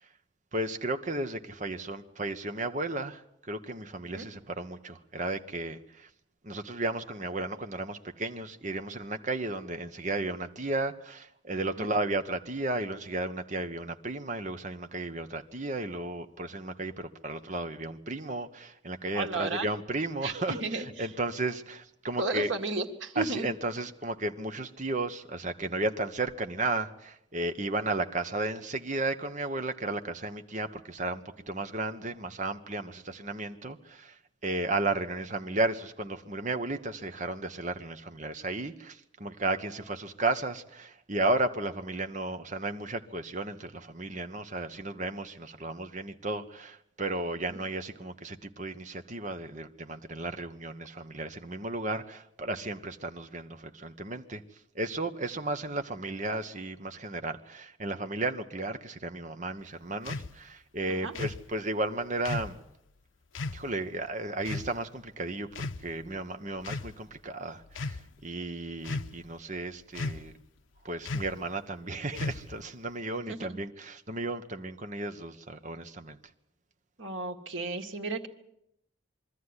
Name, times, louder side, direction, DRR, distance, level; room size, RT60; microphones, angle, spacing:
voice 1, 0.5-3.2 3.5-6.1 6.4-22.5 23.1-54.4 54.7-62.6 63.5-70.3 70.8-76.2, right 2 dB, 40° right, 1.2 m, -34 dB
voice 2, 19.1-19.7 20.2-20.9 22.2-23.5 47.5-47.6 61.0-61.1 73.3-73.6 77.0-78.3, right 3 dB, 85° right, 2.0 m, -33 dB
sound 1, 60.1-60.3 61.1-61.4 62.3-62.6 63.3-63.6 64.5-64.7 65.5-66.1 66.6-66.9 67.7-68.0 68.8-69.3 69.9-70.3 71.1-71.4 72.1-72.6, left 3 dB, 85° left, 0.7 m, -35 dB
23.0 x 14.0 x 9.8 m
head